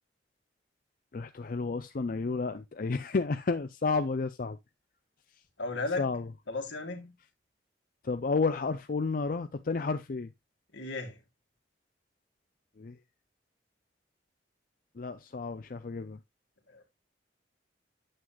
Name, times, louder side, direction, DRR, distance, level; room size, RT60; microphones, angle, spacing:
voice 1, 1.1-4.6 6.0-6.3 8.0-10.3 12.8-13.0 15.0-16.2, left 4 dB, 50° left, 0.5 m, -31 dB
voice 2, 5.6-6.1 6.5-7.1 10.7-11.2 16.7-16.8, left 3 dB, 80° left, 2.3 m, -35 dB
8.8 x 7.6 x 2.4 m
head